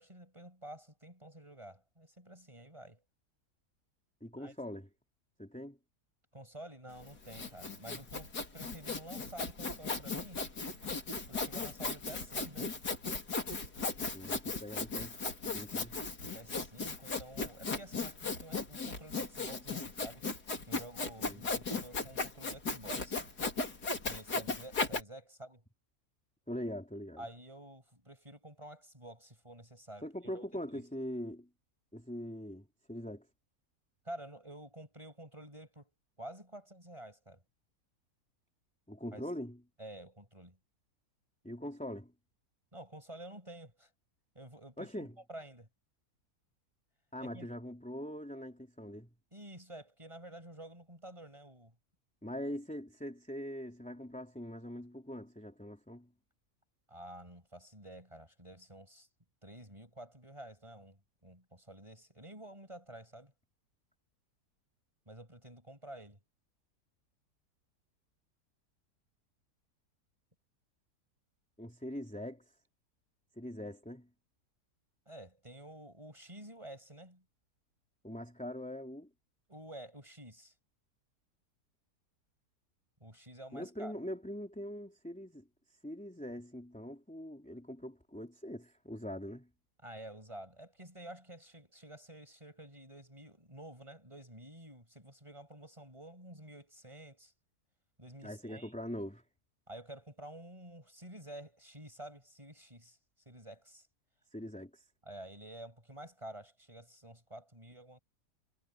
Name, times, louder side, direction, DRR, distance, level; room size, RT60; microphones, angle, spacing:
voice 1, 0.0-3.0 4.3-4.5 6.3-10.5 11.3-12.8 16.3-20.2 20.7-23.2 24.1-25.6 27.2-30.1 30.3-30.4 30.7-30.8 34.0-35.9 36.2-37.4 39.1-39.2 39.8-40.6 42.7-43.9 44.3-45.7 47.2-47.5 49.3-51.7 56.9-59.1 59.4-63.3 65.1-66.2 75.1-77.2 79.5-80.5 83.0-83.9 89.8-97.3 98.0-98.7 99.7-103.0 103.2-103.9 105.0-108.0, right 1 dB, 20° right, 6.8 m, -50 dB
voice 2, 4.2-4.9 5.4-5.8 14.1-15.2 15.5-16.0 21.2-21.4 26.5-27.2 30.0-31.5 31.9-33.3 38.9-39.6 41.4-42.1 44.8-45.1 47.1-49.1 52.2-56.1 71.6-72.4 73.4-74.1 78.0-79.1 83.5-85.4 85.8-89.5 98.2-99.2 104.3-104.8, equal, 5° left, 3.4 m, -42 dB
Sawing, 7.0-25.0, left 3 dB, 80° left, 4.1 m, -37 dB
omnidirectional pair, 1.7 m